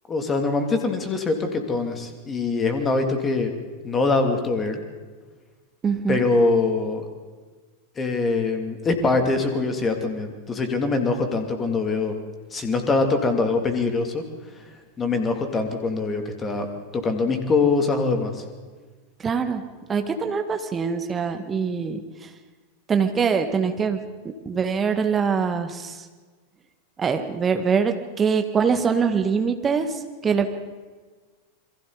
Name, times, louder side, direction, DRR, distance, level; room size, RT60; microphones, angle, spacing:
voice 1, 0.1-3.5 3.8-4.8 6.1-7.0 8.0-12.1 12.5-14.2 15.0-16.7 16.9-18.4, left 3 dB, 20° left, 5 dB, 2.8 m, -23 dB
voice 2, 5.8-6.3 19.2-19.6 19.9-22.0 22.9-24.0 24.5-26.0 27.0-29.9 30.2-30.5, right 6 dB, 20° right, 6 dB, 1.9 m, -23 dB
28.5 x 23.0 x 4.1 m, 1.4 s
figure-of-eight pair, 90°, 0 cm